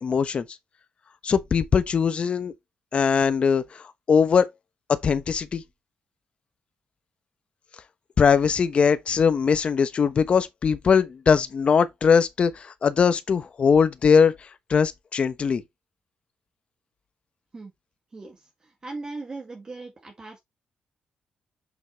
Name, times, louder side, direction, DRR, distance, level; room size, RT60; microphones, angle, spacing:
voice 1, 0.0-0.4 1.2-2.5 2.9-4.5 4.9-5.6 8.2-14.3 14.7-15.6, left 6 dB, 45° left, 1.1 m, -21 dB
voice 2, 18.1-20.4, right 3 dB, 30° right, 2.1 m, -39 dB
7.3 x 6.1 x 3.2 m
cardioid pair, 120°, 3 cm